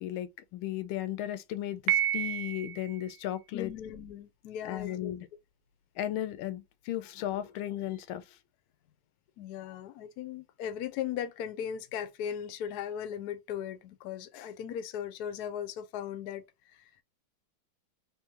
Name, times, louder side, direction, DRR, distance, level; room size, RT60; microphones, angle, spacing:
voice 1, 0.0-3.7 4.6-5.3 6.0-8.2, left 12 dB, 85° left, 1.4 m, -35 dB
Piano, 1.9-3.0, right 11 dB, 80° right, 0.8 m, -29 dB
voice 2, 3.5-5.1 9.4-16.4 16.7-16.9, left 9 dB, 70° left, 1.0 m, -38 dB
3.6 x 2.9 x 2.9 m
omnidirectional pair, 2.2 m